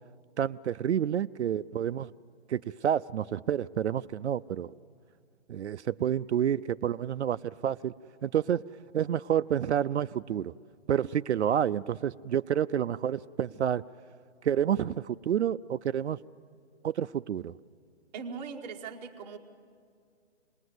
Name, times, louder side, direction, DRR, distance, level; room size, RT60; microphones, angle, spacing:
voice 1, 0.4-2.1 2.5-4.7 5.5-7.9 8.2-8.6 8.9-10.5 10.9-13.8 14.4-16.2 16.8-17.6, right 9 dB, 70° right, 13 dB, 0.5 m, -29 dB
voice 2, 18.1-19.4, right 5 dB, 10° right, 0 dB, 0.8 m, -40 dB
26.5 x 20.0 x 7.9 m, 2.1 s
hypercardioid pair, 160°, 35 cm